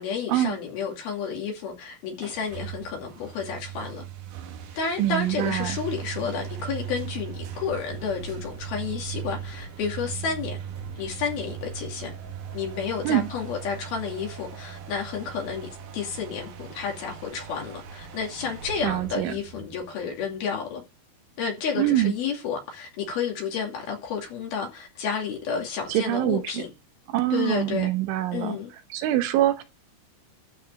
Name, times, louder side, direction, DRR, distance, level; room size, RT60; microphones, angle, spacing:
voice 1, 0.0-4.0 4.8-10.6 11.0-12.1 12.5-20.8 21.4-26.7 27.3-27.9 28.3-28.7, left 6 dB, 60° left, 4.1 m, -31 dB
sound 1, 2.2-20.7, right 8 dB, 70° right, 2.1 m, -39 dB
voice 2, 5.0-5.8 13.1-13.3 18.8-19.3 21.8-22.1 25.9-26.6 27.1-28.6 28.9-29.6, right 13 dB, 85° right, 3.5 m, -24 dB
12.5 x 5.0 x 7.6 m
omnidirectional pair, 5.4 m